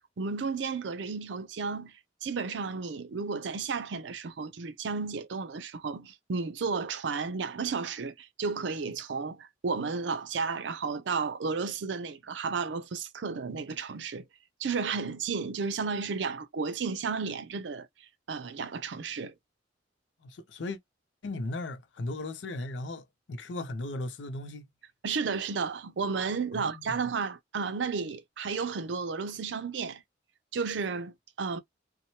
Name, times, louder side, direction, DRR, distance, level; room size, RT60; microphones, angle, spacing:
voice 1, 0.2-1.9 2.2-14.3 14.6-17.9 18.3-19.3 25.0-30.0 30.5-31.6, right 5 dB, 75° right, 0.5 m, -33 dB
voice 2, 20.2-20.8 21.2-24.6 26.5-27.0, left 2 dB, 75° left, 0.5 m, -37 dB
2.8 x 2.1 x 2.8 m
head